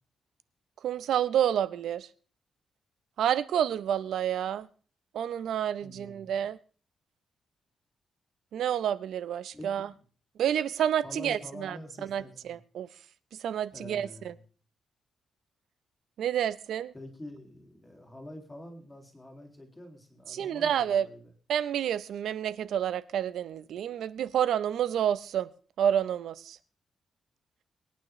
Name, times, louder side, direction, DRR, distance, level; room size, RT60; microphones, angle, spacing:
voice 1, 0.8-2.1 3.2-4.7 5.1-6.6 8.5-9.9 10.4-11.8 12.1-12.9 13.4-14.3 16.2-16.9 20.3-21.1 21.5-25.5 25.8-26.6, right 9 dB, 70° right, 0.6 m, -29 dB
voice 2, 5.8-6.4 9.5-9.8 11.0-12.6 13.7-14.4 16.9-21.3, left 1 dB, 10° left, 2.3 m, -46 dB
24.0 x 9.3 x 3.1 m
wide cardioid pair, 175°, 0 cm